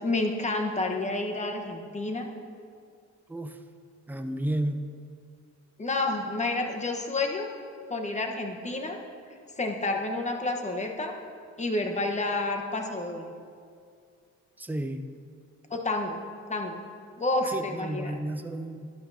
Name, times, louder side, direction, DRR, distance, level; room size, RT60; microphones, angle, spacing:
voice 1, 0.0-2.3 5.8-7.5 7.9-9.0 9.6-11.2 11.6-13.3 15.7-16.2 16.5-16.8 17.2-18.1, left 2 dB, 25° left, 3 dB, 1.2 m, -29 dB
voice 2, 4.1-4.9 14.6-15.0 17.5-18.9, right 1 dB, 5° right, 7 dB, 0.6 m, -32 dB
12.0 x 11.5 x 2.8 m, 2.2 s
cardioid pair, 90°, 30 cm